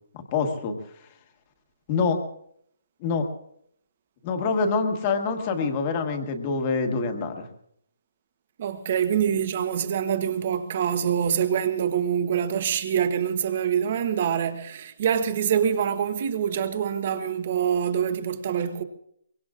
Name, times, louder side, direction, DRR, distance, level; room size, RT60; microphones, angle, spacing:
voice 1, 0.1-0.8 1.9-2.2 3.0-3.3 4.2-7.5, left 4 dB, 20° left, 1.4 m, -25 dB
voice 2, 8.6-18.8, right 8 dB, 30° right, 1.0 m, -25 dB
23.5 x 23.0 x 2.5 m
hypercardioid pair, 180°, 0 cm